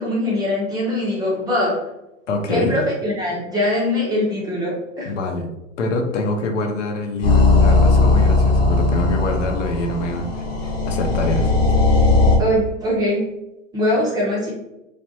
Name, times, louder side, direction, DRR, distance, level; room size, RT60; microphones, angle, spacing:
voice 1, 0.0-1.8 2.5-5.1 12.4-13.3 13.7-14.5, left 1 dB, 10° right, -4 dB, 0.5 m, -22 dB
voice 2, 2.3-2.8 5.0-5.5 5.8-11.5, left 2 dB, 70° left, 3 dB, 0.8 m, -25 dB
sound 1, 7.2-12.4, left 3 dB, 20° left, 0.8 m, -17 dB
3.2 x 2.5 x 2.6 m, 0.90 s
hypercardioid pair, 125°, 39 cm